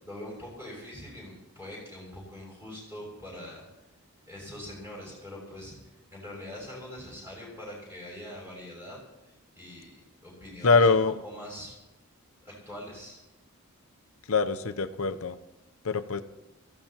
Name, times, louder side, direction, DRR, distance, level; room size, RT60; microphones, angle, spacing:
voice 1, 0.0-3.7 4.3-5.7 6.1-11.7 12.4-13.2, left 1 dB, 10° right, -4 dB, 6.5 m, -43 dB
voice 2, 10.6-11.1 14.3-15.4 15.8-16.2, left 4 dB, 65° left, 10 dB, 0.7 m, -23 dB
23.0 x 15.5 x 3.0 m, 0.97 s
head